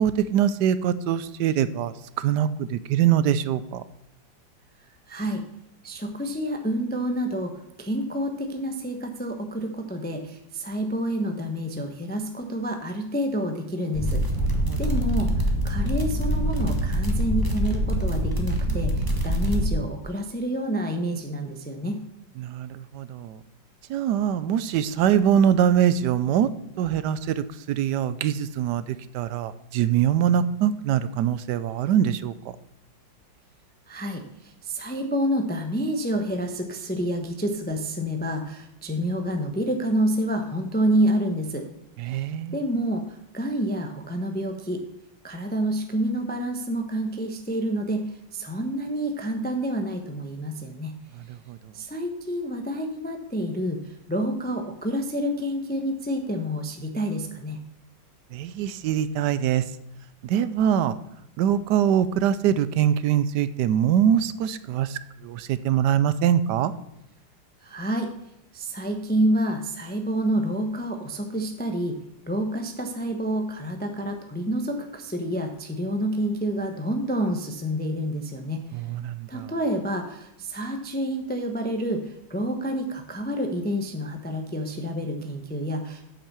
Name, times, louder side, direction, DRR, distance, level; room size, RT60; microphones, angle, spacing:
voice 1, 0.0-3.8 14.3-15.1 22.4-23.4 23.9-32.3 42.0-42.6 51.1-51.7 58.3-59.7 60.2-61.0 61.4-66.7 78.7-79.5, right 9 dB, 75° right, 14 dB, 1.1 m, -23 dB
voice 2, 5.1-5.4 5.8-7.5 7.8-14.2 14.8-22.0 33.9-41.7 42.1-44.8 45.2-51.0 51.7-57.6 67.6-68.1 68.5-72.0 72.3-78.7 79.3-86.1, equal, 10° left, 4 dB, 0.5 m, -28 dB
sound 1, 13.9-19.7, equal, 15° right, 1.0 m, -24 dB
8.4 x 5.9 x 6.8 m, 0.80 s
omnidirectional pair, 2.0 m